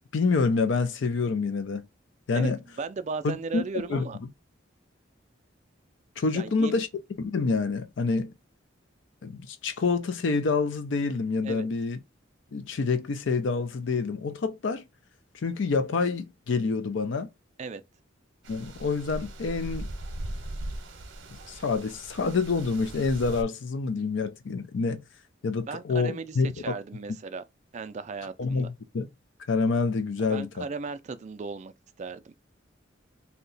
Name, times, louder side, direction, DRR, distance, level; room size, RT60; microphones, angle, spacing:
voice 1, 0.1-1.8 2.3-2.6 3.2-3.6 3.9-4.1 6.2-6.9 7.2-8.3 9.2-12.0 12.5-14.8 15.4-17.3 18.5-19.9 21.5-25.0 25.4-26.7 28.4-29.1 29.5-30.7, left 4 dB, 70° left, 0.5 m, -27 dB
voice 2, 2.8-4.2 6.3-6.8 11.4-11.7 17.6-17.8 25.7-27.4 27.7-28.7 30.3-31.7 32.0-32.3, right 4 dB, 35° right, 0.3 m, -36 dB
sound 1, 18.4-23.4, right 1 dB, 75° right, 0.7 m, -39 dB
2.8 x 2.2 x 3.9 m
head